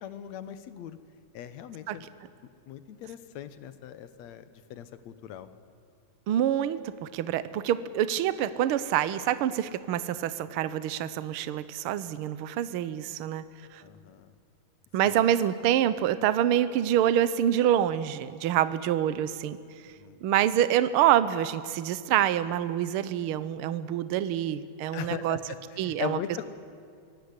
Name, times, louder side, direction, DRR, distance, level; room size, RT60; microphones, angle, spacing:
voice 1, 0.0-1.0 1.3-2.1 2.7-5.5 13.8-14.3 15.0-15.1 20.0-20.2 24.9-26.5, left 10 dB, 70° left, 12 dB, 2.2 m, -39 dB
voice 2, 6.3-13.4 13.7-13.8 14.9-19.6 20.2-25.4 25.8-26.2, right 11 dB, 65° right, 14 dB, 1.4 m, -26 dB
25.0 x 17.5 x 9.8 m, 2.3 s
omnidirectional pair, 3.3 m